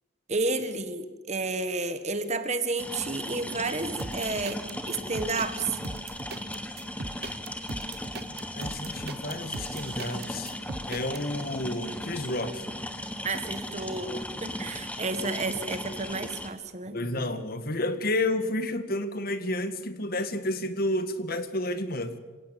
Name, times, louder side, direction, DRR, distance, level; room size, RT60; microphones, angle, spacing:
voice 1, 0.3-5.8 13.2-17.0, right 3 dB, 35° right, 10 dB, 1.7 m, -31 dB
sound 1, 2.8-16.5, left 1 dB, 5° left, 1.7 m, -37 dB
sound 2, 4.0-11.2, right 3 dB, 50° right, 1.1 m, -39 dB
voice 2, 8.3-10.5 10.9-12.6 16.9-22.1, left 1 dB, 50° left, 10 dB, 1.8 m, -31 dB
26.5 x 17.5 x 8.7 m, 1.3 s
head